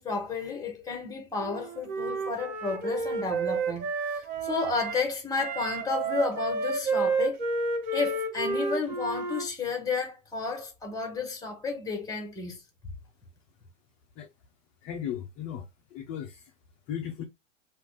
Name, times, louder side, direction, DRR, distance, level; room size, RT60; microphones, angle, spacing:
voice 1, 0.0-7.4 7.9-12.6, left 4 dB, 10° left, 1.2 m, -32 dB
Wind instrument woodwind instrument, 1.4-5.0 5.4-9.5, right 3 dB, 50° right, 1.1 m, -31 dB
voice 2, 14.8-15.6 15.9-16.5 16.9-17.2, left 9 dB, 25° left, 0.3 m, -36 dB
3.3 x 2.4 x 3.3 m
hypercardioid pair, 125°, 37 cm